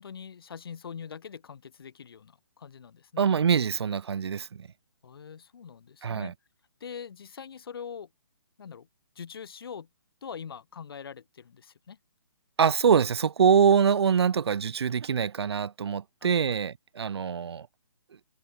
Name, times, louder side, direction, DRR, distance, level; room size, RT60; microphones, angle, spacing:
voice 1, 0.0-3.3 5.0-6.3 6.8-8.1 8.6-8.9 9.1-9.9 10.2-12.0 16.2-16.6, left 7 dB, 60° left, 4.5 m, -43 dB
voice 2, 3.2-4.7 6.0-6.3 12.6-17.7, right 7 dB, 80° right, 0.4 m, -24 dB
hypercardioid pair, 145°, 14 cm